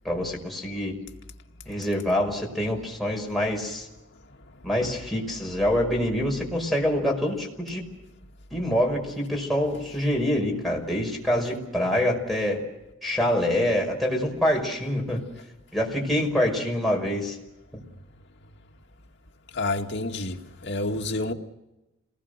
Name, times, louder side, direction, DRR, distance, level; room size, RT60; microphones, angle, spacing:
voice 1, 0.0-0.9 1.7-3.9 4.6-7.8 8.5-12.6 13.0-15.2 15.7-17.4, left 1 dB, ahead, 5.5 m, -25 dB
voice 2, 19.5-21.3, left 2 dB, 60° left, 2.2 m, -29 dB
28.5 x 20.5 x 6.7 m
head